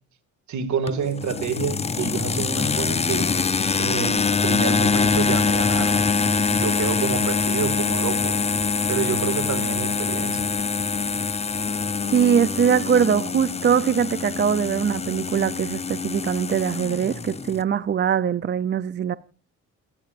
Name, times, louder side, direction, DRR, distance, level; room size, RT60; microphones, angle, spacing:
voice 1, 0.5-3.3 3.8-8.4 8.9-10.5, right 7 dB, 70° right, 2.1 m, -28 dB
sound 1, 0.9-17.6, left 5 dB, 20° left, 0.6 m, -24 dB
voice 2, 12.1-19.2, right 8 dB, 35° right, 0.5 m, -22 dB
29.0 x 9.9 x 2.5 m
cardioid pair, 90°, 30 cm